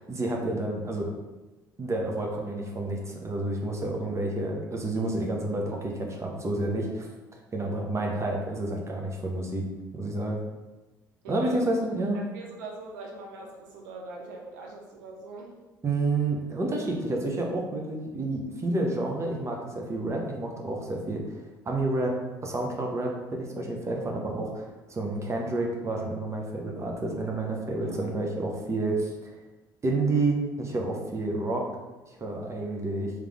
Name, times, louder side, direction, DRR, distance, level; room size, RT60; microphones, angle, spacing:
voice 1, 0.1-1.1 1.8-7.1 7.5-9.6 9.9-10.4 11.3-12.2 15.8-21.4 21.6-22.1 22.4-29.3 29.8-31.6 32.1-33.1, right 2 dB, 25° right, 0 dB, 0.9 m, -29 dB
voice 2, 11.2-11.9 12.1-15.6 27.8-28.1, right 3 dB, 75° right, -1 dB, 0.8 m, -42 dB
3.4 x 3.2 x 3.5 m, 1.1 s
hypercardioid pair, 55°, 10 cm